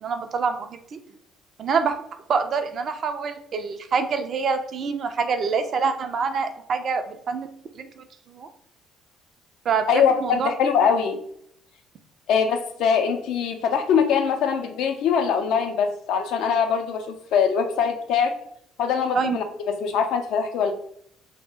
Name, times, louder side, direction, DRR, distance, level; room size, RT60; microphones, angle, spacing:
voice 1, 0.0-1.0 1.6-2.0 2.3-7.5 7.8-8.5 9.7-10.5 19.1-19.4, right 5 dB, 50° right, 7 dB, 0.4 m, -26 dB
voice 2, 9.9-11.2 12.3-18.4 18.8-20.7, left 6 dB, 60° left, 6 dB, 0.4 m, -22 dB
2.6 x 2.0 x 3.4 m, 0.68 s
figure-of-eight pair, 50°, 0 cm